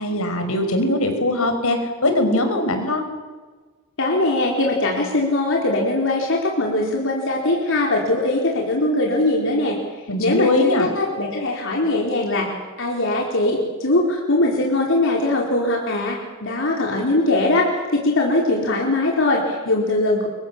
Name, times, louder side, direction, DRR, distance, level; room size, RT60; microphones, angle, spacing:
voice 1, 0.0-3.0 10.1-10.9, left 1 dB, 80° left, 6 dB, 5.4 m, -21 dB
voice 2, 4.0-9.8 10.2-12.5 12.8-17.7 17.9-20.3, left 2 dB, 65° left, -1 dB, 4.4 m, -21 dB
30.0 x 23.5 x 7.4 m, 1.4 s
head